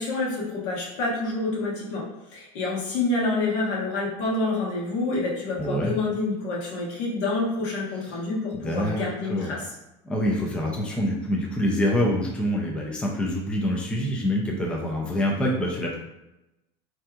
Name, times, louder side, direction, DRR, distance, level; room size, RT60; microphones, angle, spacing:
voice 1, 0.0-2.1 2.3-9.7, left 2 dB, 75° left, -4 dB, 1.1 m, -27 dB
voice 2, 5.6-5.9 8.5-9.5 10.0-16.0, equal, 5° left, -2 dB, 0.4 m, -26 dB
3.3 x 2.7 x 2.3 m, 0.93 s
supercardioid pair, 135°, 15 cm